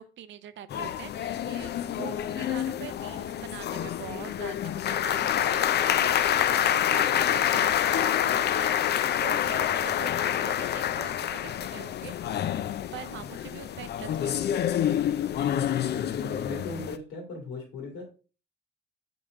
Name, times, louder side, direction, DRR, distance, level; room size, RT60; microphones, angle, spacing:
voice 1, 0.0-12.6 12.9-14.4, right 10 dB, 70° right, 13 dB, 0.6 m, -44 dB
sound 1, 0.7-17.0, left 10 dB, 55° left, 0.5 m, -27 dB
voice 2, 9.4-9.9 15.7-18.0, left 3 dB, 85° left, 0 dB, 2.1 m, -39 dB
5.6 x 5.4 x 3.5 m, 0.35 s
cardioid pair, 90°, 20 cm